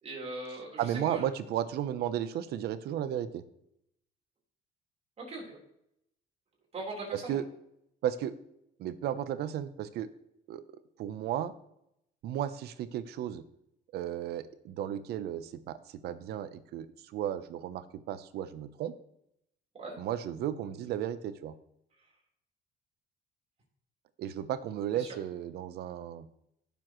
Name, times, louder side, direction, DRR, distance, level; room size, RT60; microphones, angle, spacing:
voice 1, 0.0-1.3 5.2-5.6 6.7-7.4 19.7-20.0 24.9-25.2, right 2 dB, 40° right, -2 dB, 4.0 m, -40 dB
voice 2, 0.8-3.4 7.1-7.4 8.0-8.4 8.8-10.1 10.5-10.6 11.0-11.5 12.2-13.4 13.9-15.8 16.0-16.9 17.1-18.9 20.0-21.5 24.2-26.3, right 10 dB, 75° right, 13 dB, 0.8 m, -34 dB
16.0 x 7.0 x 3.1 m, 0.77 s
cardioid pair, 110°, 17 cm